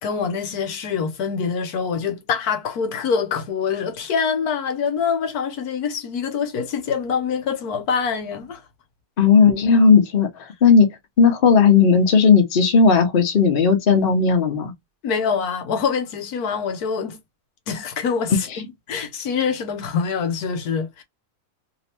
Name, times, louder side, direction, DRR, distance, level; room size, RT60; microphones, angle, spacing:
voice 1, 0.0-8.6 15.0-17.2 17.7-21.0, left 6 dB, 80° left, 1.3 m, -25 dB
voice 2, 9.2-10.9 11.2-14.7 18.3-18.4, left 5 dB, 40° left, 1.0 m, -15 dB
3.1 x 3.1 x 2.8 m
omnidirectional pair, 1.6 m